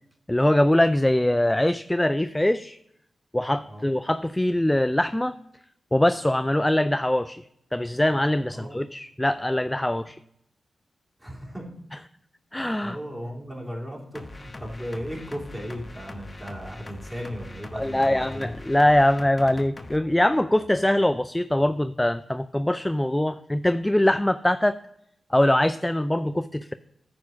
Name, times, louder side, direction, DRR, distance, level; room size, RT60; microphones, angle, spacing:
voice 1, 0.3-2.8 3.3-5.4 5.9-7.4 7.7-10.2 12.5-13.0 17.8-24.8 25.3-26.7, left 1 dB, 15° left, 12 dB, 0.3 m, -22 dB
voice 2, 8.5-8.8 11.2-11.7 12.8-18.5, equal, 10° right, -3 dB, 3.2 m, -36 dB
sound 1, 14.1-20.0, left 2 dB, 35° left, 0.9 m, -42 dB
9.3 x 4.3 x 5.9 m, 0.76 s
cardioid pair, 45°, 0 cm